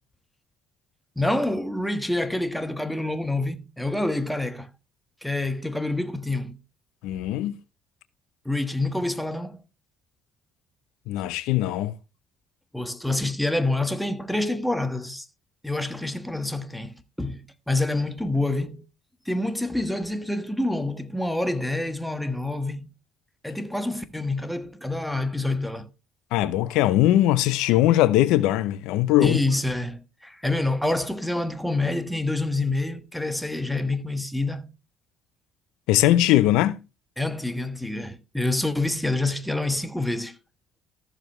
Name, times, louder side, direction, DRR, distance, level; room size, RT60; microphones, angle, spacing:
voice 1, 1.2-4.7 5.2-6.6 8.4-9.6 12.7-15.3 15.6-18.8 19.3-22.9 23.4-25.9 29.2-34.7 37.2-40.3, left 2 dB, 5° left, 1.3 m, -27 dB
voice 2, 7.0-7.5 11.1-11.9 26.3-29.4 35.9-36.8, left 14 dB, 85° left, 0.6 m, -20 dB
14.0 x 7.0 x 3.1 m
cardioid pair, 85°, 0 cm